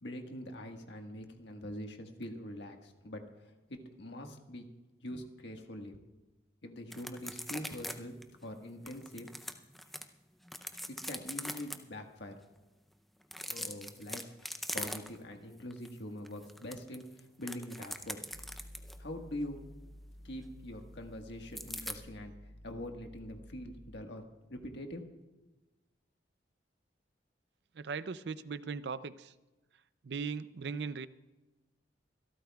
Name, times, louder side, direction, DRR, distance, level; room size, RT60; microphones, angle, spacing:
voice 1, 0.0-4.7 5.0-6.0 6.6-8.1 8.4-9.3 10.9-12.3 13.4-14.2 14.7-17.1 17.4-18.2 19.0-19.6 20.2-22.3 22.6-24.2 24.5-25.0, left 1 dB, 70° left, 3 dB, 1.5 m, -44 dB
sound 1, 6.9-8.0 8.2-8.3 8.9-10.0 10.5-11.8 13.2-15.3 15.7-15.9 16.3-19.0 21.6-22.0, equal, ahead, 0.5 m, -41 dB
sound 2, 18.3-24.0, equal, 50° left, 2.3 m, -52 dB
voice 2, 27.7-29.3 30.0-31.1, right 5 dB, 65° right, 15 dB, 0.5 m, -38 dB
25.5 x 13.0 x 2.3 m, 1.1 s
head